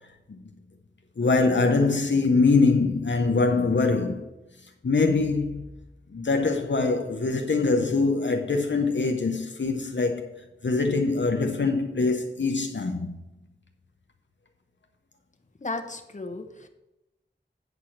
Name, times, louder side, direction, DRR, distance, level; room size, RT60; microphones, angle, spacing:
voice 1, 1.2-4.3 4.8-5.7 6.1-10.3 10.6-13.2, left 3 dB, 70° left, 0.7 m, -23 dB
voice 2, 15.6-16.7, left 3 dB, 40° left, 1.0 m, -34 dB
9.0 x 4.8 x 7.2 m
wide cardioid pair, 55°, 20 cm